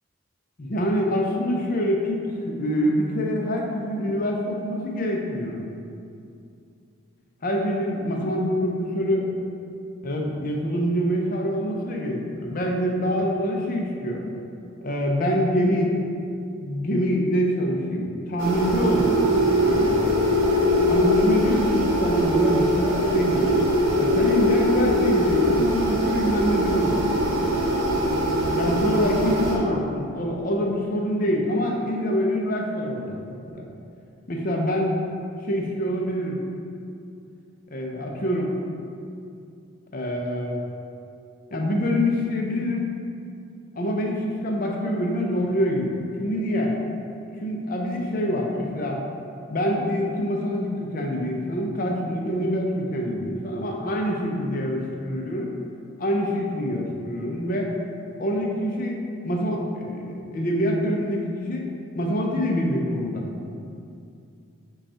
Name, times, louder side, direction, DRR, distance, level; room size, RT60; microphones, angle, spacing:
voice 1, 0.6-5.6 7.4-9.3 10.0-14.2 14.8-16.2 16.6-19.2 19.6-20.3 20.9-23.5 24.0-27.0 28.5-33.7 34.3-35.0 35.4-36.4 37.7-38.5 39.9-40.6 41.5-42.9 43.7-46.7 47.4-49.0 49.5-55.5 56.0-57.7 58.2-59.0 59.2-61.7 61.9-63.2, equal, 40° left, 0 dB, 0.5 m, -25 dB
sound 1, 18.4-29.6, equal, 65° right, 0.8 m, -22 dB
5.2 x 2.3 x 4.2 m, 2.5 s
head